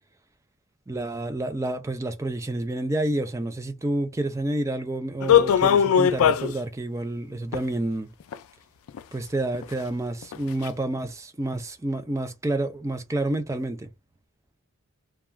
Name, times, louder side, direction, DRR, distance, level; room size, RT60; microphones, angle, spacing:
voice 1, 0.9-8.1 9.1-13.9, right 1 dB, 15° right, 0.3 m, -29 dB
sound 1, 5.2-6.5 7.5-7.6 8.3-8.4 8.9-9.0 9.5-9.6 10.2-10.3 10.7-10.8, left 8 dB, 80° left, 0.3 m, -19 dB
2.3 x 2.3 x 3.0 m
head